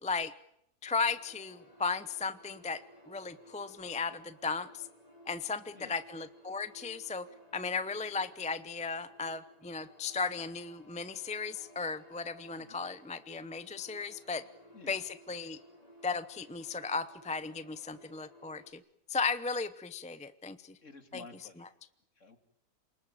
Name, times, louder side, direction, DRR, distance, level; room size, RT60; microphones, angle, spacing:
voice 1, 0.0-0.3 0.8-2.8 3.1-4.9 5.3-7.3 7.5-14.4 14.9-15.6 16.0-18.8 19.1-20.8 21.1-21.2, left 4 dB, 5° left, 13 dB, 0.6 m, -36 dB
sound 1, 0.9-18.7, equal, 25° left, 3.8 m, -58 dB
voice 2, 20.8-21.7 22.2-22.4, left 4 dB, 50° left, 8 dB, 2.8 m, -51 dB
28.5 x 20.5 x 9.1 m, 0.77 s
omnidirectional pair, 1.7 m